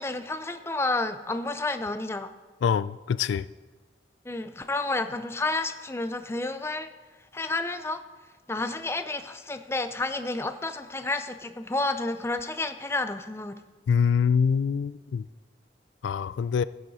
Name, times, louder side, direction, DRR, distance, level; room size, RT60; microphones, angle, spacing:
voice 1, 0.0-2.3 4.3-6.9 7.3-8.0 8.5-13.6, left 2 dB, 15° left, 0.5 m, -30 dB
voice 2, 2.6-3.4 13.9-15.2 16.0-16.6, left 6 dB, 80° left, 0.3 m, -24 dB
16.0 x 7.7 x 4.1 m
head